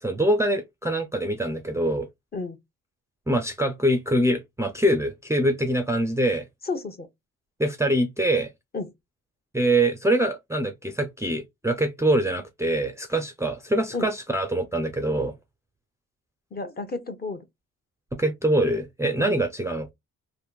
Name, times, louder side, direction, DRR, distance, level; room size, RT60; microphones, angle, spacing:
voice 1, 0.0-2.1 3.3-6.5 7.6-8.5 9.5-15.3 18.1-19.9, right 1 dB, 10° right, 0.5 m, -24 dB
voice 2, 6.6-7.1 8.7-8.9 13.9-14.1 16.5-17.4 19.2-19.4, left 3 dB, 30° left, 0.9 m, -32 dB
3.5 x 2.6 x 2.3 m
cardioid pair, 90°, 30 cm